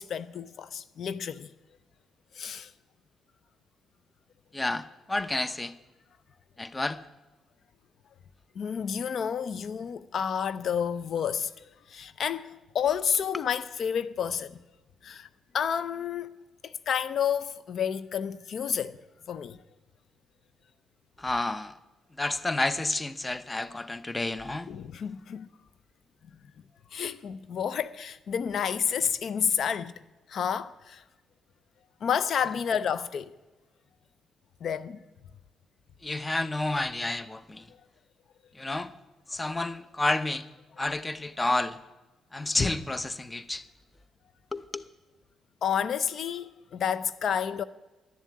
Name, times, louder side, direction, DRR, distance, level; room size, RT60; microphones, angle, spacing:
voice 1, 0.0-1.5 2.3-2.7 8.6-14.6 15.0-15.3 15.5-16.4 16.6-19.0 19.3-19.6 24.7-25.5 26.9-29.9 30.3-31.0 32.0-33.3 34.6-35.0 39.4-39.6 45.6-47.6, left 8 dB, 60° left, 0.4 m, -30 dB
voice 2, 4.5-5.7 6.6-7.0 21.2-21.7 22.2-24.7 36.0-37.7 38.6-38.9 39.3-40.4 40.8-41.8 42.3-43.6 44.5-44.8, left 2 dB, 15° left, 0.6 m, -30 dB
11.5 x 7.3 x 8.4 m
cardioid pair, 90°, 0 cm